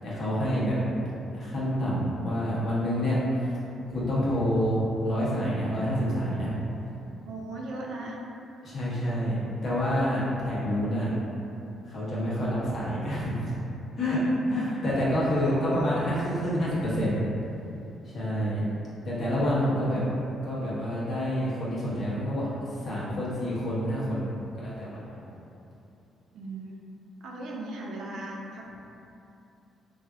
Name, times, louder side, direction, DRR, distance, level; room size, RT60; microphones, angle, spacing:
voice 1, 0.0-0.7 1.3-3.2 3.9-6.5 8.6-11.1 11.9-13.5 14.0-14.2 14.5-17.3 18.0-18.6 19.0-20.0 20.4-25.3, equal, 55° left, -8 dB, 0.9 m, -28 dB
voice 2, 7.3-8.2 15.2-15.9 19.9-20.0 26.3-26.9 27.2-28.7, right 2 dB, 75° right, -2 dB, 0.4 m, -38 dB
3.2 x 2.5 x 2.4 m, 2.8 s
cardioid pair, 90°, 0 cm